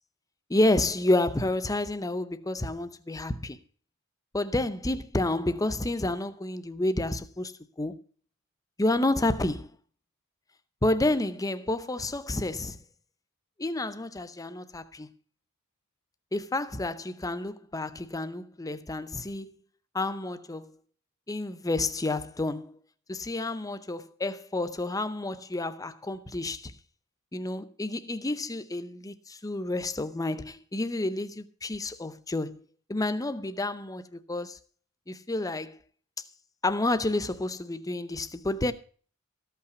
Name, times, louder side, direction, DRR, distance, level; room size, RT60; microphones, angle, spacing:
voice 1, 0.5-3.6 4.3-7.5 7.8-8.0 8.8-9.7 10.8-12.8 13.6-15.1 16.3-19.5 19.9-20.7 21.3-22.8 23.1-26.7 27.3-32.6 32.9-34.6 35.1-35.8 36.6-38.7, left 2 dB, 15° left, 0.7 m, -29 dB
13.5 x 5.8 x 8.0 m
head